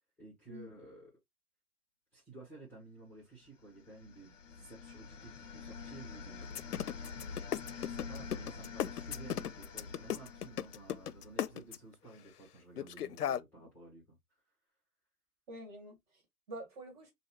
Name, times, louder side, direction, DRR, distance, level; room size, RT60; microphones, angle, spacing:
voice 1, 0.2-1.1 2.1-6.7 7.7-14.2, right 3 dB, 5° left, 1.4 m, -53 dB
sound 1, 3.6-11.6, left 5 dB, 55° left, 0.9 m, -47 dB
sound 2, 6.4-11.9 12.8-13.4, left 10 dB, 80° left, 0.6 m, -35 dB
voice 2, 7.0-7.4 15.5-16.2 16.5-17.1, right 1 dB, 25° right, 2.0 m, -48 dB
5.4 x 2.7 x 2.9 m
figure-of-eight pair, 140°, 46 cm